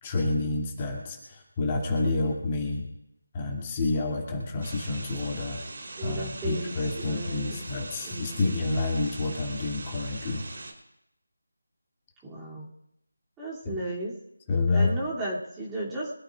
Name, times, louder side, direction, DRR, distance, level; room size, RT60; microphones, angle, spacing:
voice 1, 0.0-2.9 3.3-5.6 6.0-10.4 13.6-13.8 14.5-14.9, left 3 dB, 20° left, -1 dB, 2.6 m, -28 dB
sound 1, 4.6-10.7, right 2 dB, 55° right, 3.6 m, -41 dB
voice 2, 6.0-7.7 8.0-8.4 12.3-12.7 13.4-14.1 14.7-16.1, right 1 dB, 10° right, -6 dB, 2.8 m, -34 dB
25.0 x 14.0 x 2.5 m, 0.81 s
figure-of-eight pair, 165°, 0 cm